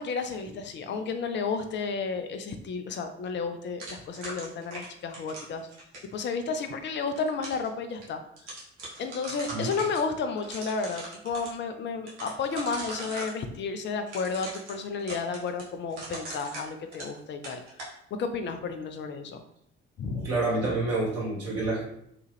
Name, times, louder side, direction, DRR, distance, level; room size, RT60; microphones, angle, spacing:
voice 1, 0.0-5.7 6.1-8.2 9.0-17.6 18.2-19.4 20.0-20.3, left 4 dB, 35° left, 7 dB, 0.5 m, -32 dB
sound 1, 3.8-6.1 6.9-7.7 8.0-8.1 8.4-10.0 10.4-11.5 12.1-13.4 14.1-17.2 17.4-17.9, right 2 dB, 80° right, 1.0 m, -40 dB
voice 2, 20.1-21.8, right 2 dB, 45° right, -5 dB, 1.4 m, -28 dB
2.9 x 2.3 x 3.1 m, 0.74 s
figure-of-eight pair, 55°, 34 cm